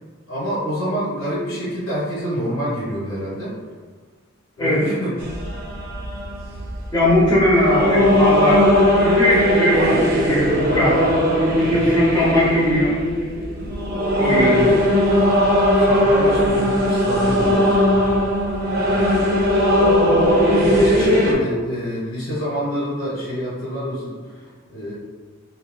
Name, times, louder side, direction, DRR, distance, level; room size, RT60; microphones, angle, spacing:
voice 1, 0.3-3.5 4.6-5.3 11.6-12.0 14.3-14.8 15.8-18.1 18.8-19.2 20.6-24.9, equal, 70° left, -7 dB, 1.3 m, -27 dB
voice 2, 4.6-4.9 6.9-11.0 11.6-12.9 14.2-14.6, left 1 dB, 20° left, -9 dB, 0.6 m, -20 dB
sound 1, 5.2-21.3, equal, 45° right, 0.5 m, -18 dB
4.0 x 2.2 x 2.2 m, 1.5 s
head